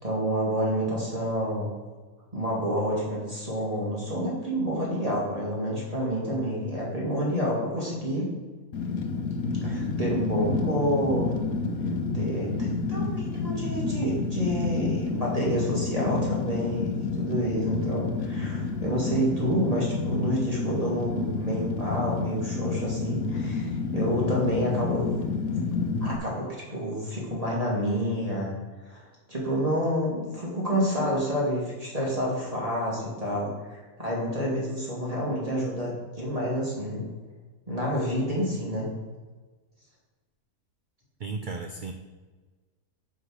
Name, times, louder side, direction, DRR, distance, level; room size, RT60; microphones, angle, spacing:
voice 1, 0.0-1.7 2.3-8.3 9.6-11.3 12.1-12.5 12.9-25.2 26.0-28.5 28.9-37.0 37.7-38.9, equal, 25° right, -5 dB, 2.3 m, -28 dB
Fire, 8.7-26.2, left 4 dB, 65° left, 1.2 m, -29 dB
voice 2, 41.2-41.9, right 4 dB, 55° right, 5 dB, 0.5 m, -34 dB
9.7 x 4.0 x 6.4 m, 1.3 s
omnidirectional pair, 1.5 m